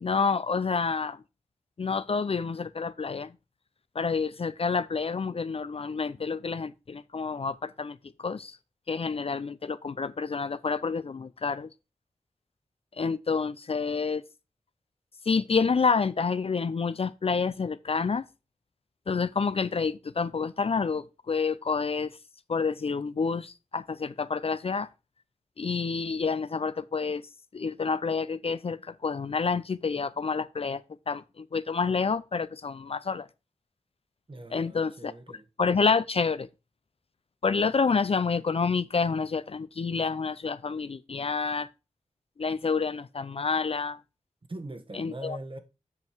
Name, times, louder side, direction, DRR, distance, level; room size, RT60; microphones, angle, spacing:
voice 1, 0.0-1.2 1.8-3.3 3.9-8.6 8.9-11.7 13.0-14.2 15.3-18.3 19.1-22.2 22.5-24.9 25.6-33.3 34.5-35.1 35.6-36.5 37.4-41.7 42.4-44.0 44.9-45.4, left 5 dB, 50° left, 0.5 m, -28 dB
voice 2, 34.3-35.5 44.5-45.6, right 1 dB, 45° right, 1.5 m, -41 dB
8.1 x 5.3 x 4.5 m
cardioid pair, 45°, 13 cm